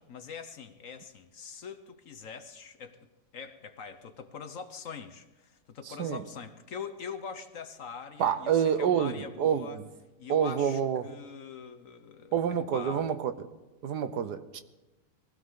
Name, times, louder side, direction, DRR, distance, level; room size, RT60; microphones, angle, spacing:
voice 1, 0.1-9.8 10.2-12.3 12.7-13.1, left 6 dB, 55° left, 9 dB, 1.1 m, -43 dB
voice 2, 5.8-6.2 8.2-9.9 10.3-11.1 12.3-13.3 13.8-14.6, right 8 dB, 70° right, 11 dB, 1.4 m, -28 dB
21.5 x 16.0 x 3.8 m, 1.1 s
omnidirectional pair, 1.8 m